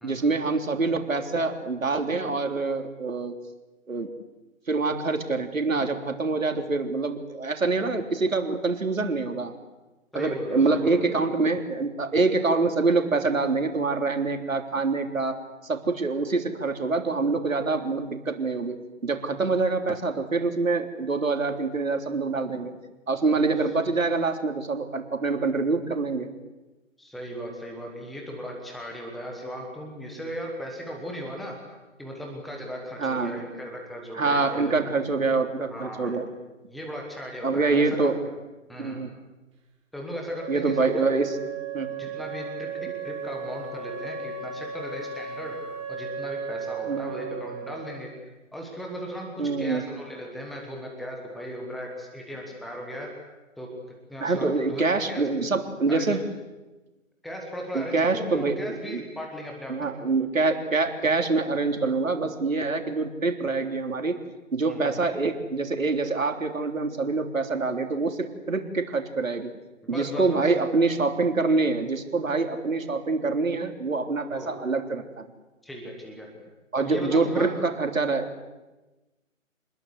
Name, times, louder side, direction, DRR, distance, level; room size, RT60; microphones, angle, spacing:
voice 1, 0.0-3.3 3.9-4.1 4.7-9.5 10.1-18.8 19.0-22.7 23.1-26.3 33.0-33.4 34.1-36.3 37.4-38.2 38.8-39.1 40.5-41.3 41.7-41.9 46.9-47.1 49.4-49.8 54.2-56.2 57.7-58.6 58.9-59.0 59.7-64.2 64.5-69.5 69.9-75.2 76.7-78.3, right 3 dB, 75° right, 5 dB, 3.6 m, -25 dB
voice 2, 10.1-11.0 27.0-31.5 32.0-34.8 35.7-36.2 36.7-38.1 38.7-39.0 39.9-41.1 42.0-45.6 45.9-48.1 48.5-53.1 53.6-53.7 54.1-55.3 55.9-56.2 57.2-59.9 64.7-64.8 69.8-70.4 74.3-74.5 75.6-76.3 76.8-77.6, equal, ahead, 0 dB, 1.2 m, -37 dB
Wind instrument woodwind instrument, 40.3-48.1, right 6 dB, 20° right, 3.2 m, -35 dB
27.5 x 20.5 x 8.1 m, 1.1 s
figure-of-eight pair, 160°, 40 cm